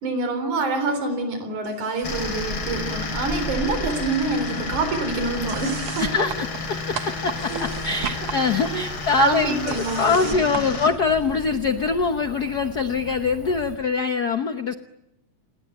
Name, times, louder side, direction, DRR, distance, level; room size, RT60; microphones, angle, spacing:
voice 1, 0.0-6.3 7.0-7.1 7.5-7.7 8.7-8.8 9.2-10.6, right 3 dB, 90° right, 8 dB, 5.3 m, -26 dB
sound 1, 1.6-2.4 2.7-3.7 4.0-11.5, right 7 dB, 50° right, 1.8 m, -37 dB
sound 2, 2.0-10.9, left 4 dB, 45° left, 4.0 m, -32 dB
Cricket / Motor vehicle (road), 2.0-13.8, right 1 dB, 20° right, 7.0 m, -37 dB
voice 2, 6.0-14.7, left 5 dB, 75° left, 8 dB, 0.8 m, -24 dB
27.5 x 21.0 x 9.2 m, 0.89 s
omnidirectional pair, 3.4 m